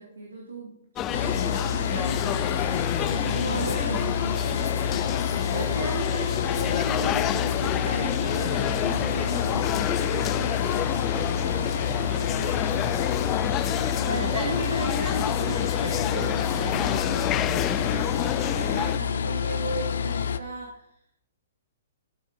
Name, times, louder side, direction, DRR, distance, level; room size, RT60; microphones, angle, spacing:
voice 1, 0.0-5.2 5.5-10.9 14.1-17.4 17.7-18.2 18.5-20.9, right 3 dB, 75° right, 0 dB, 2.9 m, -36 dB
sound 1, 1.0-19.0, left 12 dB, 25° left, 0.5 m, -29 dB
sound 2, 1.1-20.4, left 7 dB, 60° left, 0.8 m, -28 dB
voice 2, 11.1-13.1 14.1-14.6 17.8-18.1, right 6 dB, 30° right, 4 dB, 1.8 m, -44 dB
18.5 x 7.7 x 5.0 m, 0.73 s
figure-of-eight pair, 115°, 0 cm